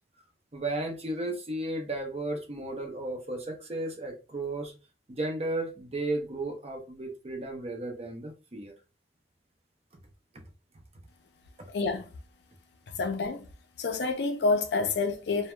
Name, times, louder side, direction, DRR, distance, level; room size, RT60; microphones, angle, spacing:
voice 1, 0.5-4.7 5.1-8.7, right 2 dB, 35° right, 0.5 m, -34 dB
voice 2, 11.7-12.1 12.9-13.5 13.8-15.5, left 3 dB, 65° left, 0.4 m, -28 dB
2.2 x 2.0 x 2.9 m
head